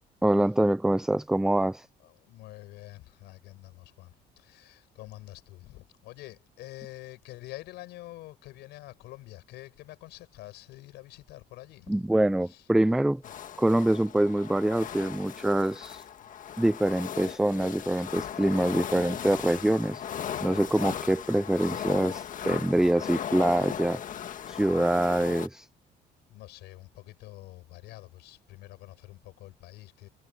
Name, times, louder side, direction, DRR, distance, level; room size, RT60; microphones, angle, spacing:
voice 1, 0.2-1.9 11.9-13.2 13.6-16.0 16.6-20.0 20.4-24.0 24.5-25.7, right 1 dB, 5° right, 0.4 m, -25 dB
voice 2, 2.0-11.9 12.5-12.6 24.6-24.7 26.3-30.1, left 17 dB, 85° left, 6.1 m, -47 dB
sound 1, 13.2-25.5, left 9 dB, 50° left, 1.7 m, -37 dB
cardioid pair, 110°, 17 cm